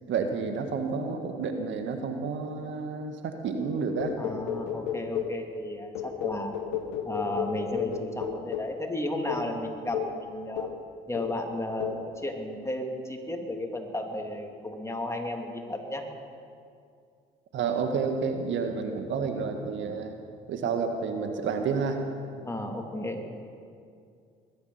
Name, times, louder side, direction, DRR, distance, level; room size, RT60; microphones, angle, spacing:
voice 1, 0.1-4.1 17.5-20.1 20.5-22.0, right 5 dB, 65° right, 5 dB, 1.5 m, -30 dB
sound 1, 4.0-5.4 5.9-8.8 9.3-9.5 9.9-10.2 10.6-10.9 11.1-11.4 11.8-12.1, left 8 dB, 90° left, 1.0 m, -33 dB
voice 2, 4.2-6.5 7.0-10.7 11.1-16.0 22.4-23.3, left 1 dB, 15° left, 2 dB, 2.9 m, -34 dB
21.5 x 11.0 x 5.7 m, 2.3 s
hypercardioid pair, 55°, 21 cm